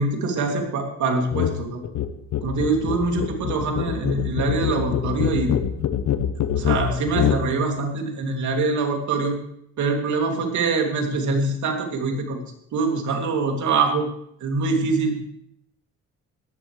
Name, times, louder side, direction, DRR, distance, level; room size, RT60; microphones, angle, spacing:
voice 1, 0.0-1.8 2.4-5.5 6.6-9.3 9.8-14.0 14.4-15.1, right 3 dB, 70° right, 2 dB, 2.8 m, -24 dB
sound 1, 1.3-1.6 1.8-7.5, left 10 dB, 70° left, 1.0 m, -24 dB
16.5 x 13.0 x 3.3 m, 0.72 s
cardioid pair, 90°, 30 cm